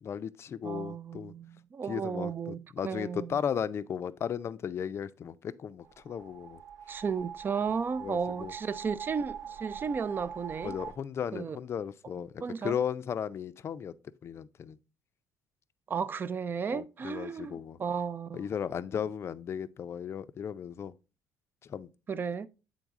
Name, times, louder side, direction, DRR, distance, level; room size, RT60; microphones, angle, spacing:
voice 1, 0.0-1.3 1.9-6.6 8.0-8.5 10.6-12.3 12.6-13.9 14.2-14.8 16.7-17.8 18.3-20.9 21.7-21.9, left 8 dB, 45° left, 0.4 m, -35 dB
voice 2, 0.6-3.4 6.9-10.8 11.3-11.6 12.4-12.8 15.9-18.5 22.1-22.5, right 6 dB, 35° right, 0.4 m, -34 dB
sound 1, 5.8-10.9, right 7 dB, 65° right, 0.7 m, -43 dB
8.0 x 3.9 x 3.6 m
supercardioid pair, 85°, 6 cm